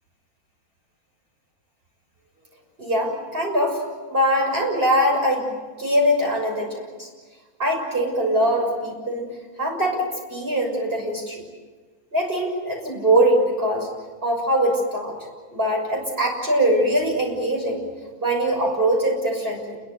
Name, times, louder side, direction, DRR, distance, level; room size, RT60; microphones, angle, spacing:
voice 1, 2.8-3.8 4.1-7.1 7.6-9.3 9.6-11.4 12.1-13.9 14.2-15.1 15.5-17.9 18.2-19.8, right 1 dB, 40° right, 0 dB, 6.8 m, -22 dB
29.0 x 22.5 x 8.2 m, 1.4 s
omnidirectional pair, 1.5 m